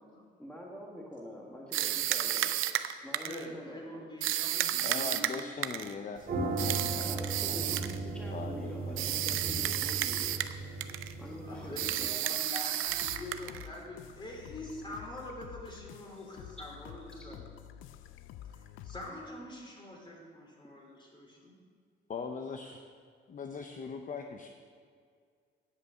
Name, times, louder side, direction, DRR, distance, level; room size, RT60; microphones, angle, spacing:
voice 1, 0.4-2.5 3.0-4.0 7.0-10.4 11.2-12.1 16.6-16.7 17.3-17.4, left 1 dB, 5° left, -2 dB, 1.6 m, -45 dB
sound 1, 1.7-3.5 4.2-5.9 6.6-8.0 9.0-10.6 10.8-11.1 11.8-13.7, right 13 dB, 85° right, 0.6 m, -32 dB
voice 2, 3.2-5.2 11.2-17.5 18.4-21.6, left 1 dB, 25° left, -1 dB, 3.3 m, -45 dB
voice 3, 4.8-7.6 8.3-9.5 22.1-22.8 23.3-24.5, left 5 dB, 40° left, 4 dB, 0.8 m, -41 dB
sound 2, 6.2-12.1, right 2 dB, 45° right, 2.2 m, -37 dB
sound 3, 12.9-19.1, left 10 dB, 85° left, 0.5 m, -49 dB
9.6 x 8.3 x 6.3 m, 2.1 s
cardioid pair, 90°, 20 cm